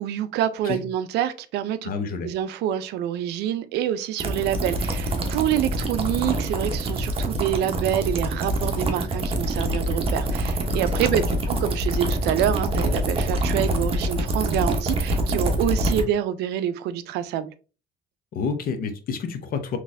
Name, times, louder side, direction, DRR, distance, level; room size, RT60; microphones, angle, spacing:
voice 1, 0.0-1.9 2.2-17.5, right 10 dB, 80° right, 0.4 m, -26 dB
voice 2, 1.8-2.3 11.1-11.2 18.3-19.8, left 5 dB, 60° left, 0.7 m, -28 dB
sound 1, 4.2-16.0, right 1 dB, 35° right, 0.8 m, -25 dB
4.0 x 3.0 x 2.5 m
cardioid pair, 110°, 17 cm